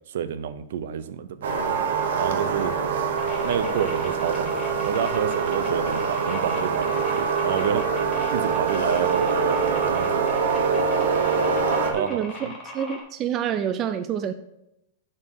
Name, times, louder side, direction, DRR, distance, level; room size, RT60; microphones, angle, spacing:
voice 1, 0.1-1.5 2.1-2.7 3.4-4.5 4.8-7.9 8.3-10.2 11.9-12.2, right 9 dB, 60° right, 13 dB, 0.6 m, -29 dB
sound 1, 1.4-11.9, right 5 dB, 90° right, 1.0 m, -24 dB
sound 2, 3.2-13.0, left 3 dB, 10° left, 1.3 m, -39 dB
voice 2, 12.0-14.3, right 9 dB, 20° right, 10 dB, 0.3 m, -28 dB
7.2 x 4.4 x 6.6 m, 0.84 s
supercardioid pair, 175°, 0 cm